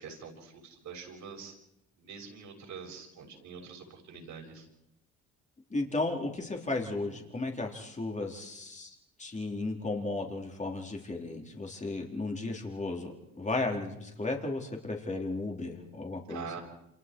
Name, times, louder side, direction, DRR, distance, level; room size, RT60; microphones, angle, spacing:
voice 1, 0.0-1.5 2.0-4.7 16.3-16.6, right 6 dB, 75° right, 2 dB, 6.5 m, -45 dB
voice 2, 5.7-16.5, left 2 dB, 25° left, 1 dB, 4.3 m, -34 dB
29.0 x 27.5 x 4.8 m, 0.82 s
cardioid pair, 90°, 30 cm